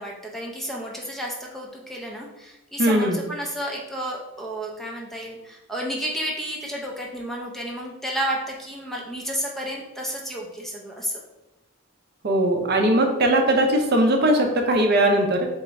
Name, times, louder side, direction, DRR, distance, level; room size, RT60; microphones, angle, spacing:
voice 1, 0.0-11.2, equal, ahead, -2 dB, 0.6 m, -31 dB
voice 2, 2.8-3.2 12.2-15.5, right 1 dB, 50° right, 3 dB, 0.6 m, -19 dB
3.5 x 3.2 x 4.0 m, 1.0 s
head